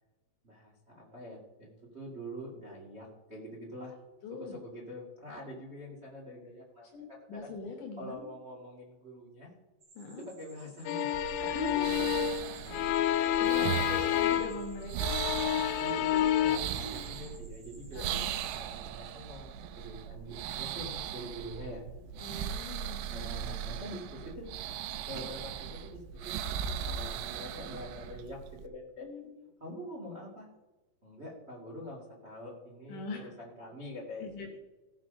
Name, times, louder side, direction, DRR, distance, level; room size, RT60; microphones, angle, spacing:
voice 1, 0.4-1.7 1.9-4.0 4.3-7.5 8.0-9.5 10.2-11.6 13.8-14.2 15.8-18.1 18.5-21.8 23.1-24.5 25.1-29.1 29.6-30.5 31.0-34.6, equal, 65° right, -3 dB, 0.6 m, -45 dB
voice 2, 4.2-4.6 6.9-8.3 10.0-10.2 11.4-12.1 13.1-15.1 16.8-17.3 17.9-18.3 22.2-23.1 29.0-29.5 32.9-33.3 34.2-34.5, left 3 dB, 65° left, 2 dB, 2.2 m, -42 dB
sound 1, 9.8-18.2, right 2 dB, 25° right, 4.6 m, -58 dB
sound 2, 10.9-14.7 15.0-16.6, left 11 dB, 85° left, 2.8 m, -29 dB
sound 3, 11.1-28.7, right 9 dB, 85° right, 3.0 m, -38 dB
17.0 x 6.2 x 5.3 m, 1.1 s
omnidirectional pair, 5.3 m